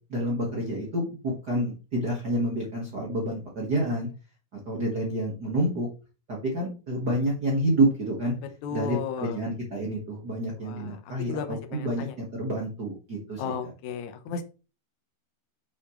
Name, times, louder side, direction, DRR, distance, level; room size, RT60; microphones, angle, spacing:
voice 1, 0.1-4.1 4.6-5.9 6.3-8.3 8.7-13.5, right 1 dB, 60° right, -2 dB, 1.0 m, -28 dB
voice 2, 8.6-9.4 10.6-11.0 11.3-12.2 13.4-14.4, left 7 dB, 75° left, 7 dB, 1.7 m, -34 dB
7.9 x 6.3 x 3.1 m, 0.32 s
omnidirectional pair, 4.5 m